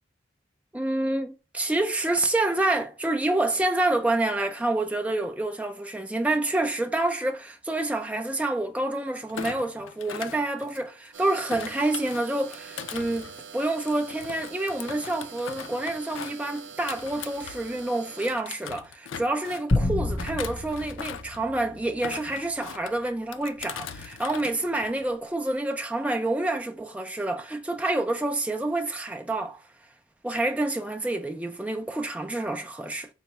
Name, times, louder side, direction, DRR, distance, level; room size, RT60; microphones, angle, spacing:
voice 1, 0.7-29.6 30.2-33.1, right 2 dB, 5° right, 0.3 m, -28 dB
Thump thud, 9.3-11.1 11.5-17.9 18.2-19.8 20.2-21.4 21.9-22.9 23.3-24.5 24.8-25.2, left 8 dB, 80° left, 0.4 m, -40 dB
sound 1, 11.1-18.3, right 6 dB, 65° right, 0.6 m, -44 dB
sound 2, 19.7-22.3, left 2 dB, 45° left, 0.7 m, -29 dB
4.3 x 2.0 x 4.1 m
head